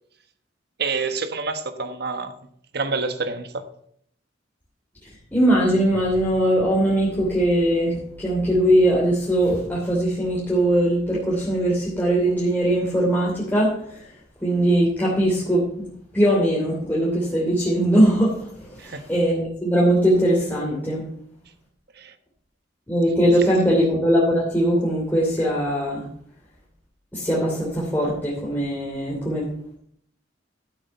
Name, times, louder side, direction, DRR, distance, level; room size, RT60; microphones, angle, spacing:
voice 1, 0.8-2.3 2.7-3.6 18.8-19.0 22.0-22.1, right 4 dB, 60° right, 1.2 m, -27 dB
voice 2, 5.3-14.0 14.4-15.9 16.1-21.1 22.9-26.0 27.1-29.5, right 1 dB, 10° left, 2.9 m, -21 dB
12.5 x 8.5 x 5.5 m
head